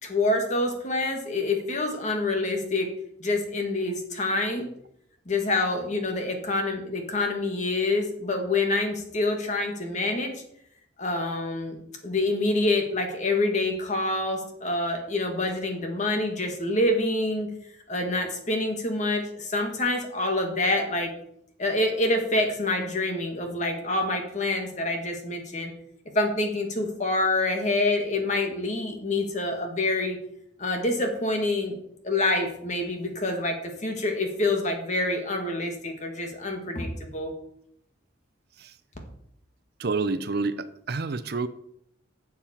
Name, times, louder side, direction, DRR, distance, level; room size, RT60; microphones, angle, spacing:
voice 1, 0.0-2.9 3.2-4.7 5.3-10.3 11.0-11.8 12.0-17.5 17.9-21.1 21.6-25.7 26.1-30.2 30.6-31.8 32.0-37.3, left 2 dB, 35° left, 3 dB, 1.8 m, -26 dB
voice 2, 39.8-41.5, right 3 dB, 55° right, 12 dB, 0.6 m, -28 dB
11.5 x 7.4 x 4.4 m, 0.72 s
head